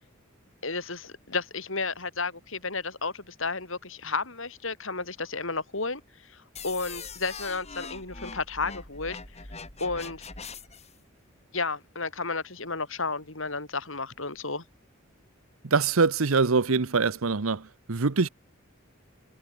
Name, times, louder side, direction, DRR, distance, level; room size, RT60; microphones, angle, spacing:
voice 1, 0.6-9.2 9.8-10.2 11.5-14.6, left 4 dB, 65° left, 5.7 m, -32 dB
sound 1, 6.6-11.0, left 4 dB, 30° left, 6.2 m, -42 dB
voice 2, 15.7-17.6 17.9-18.3, right 4 dB, 85° right, 0.9 m, -23 dB
head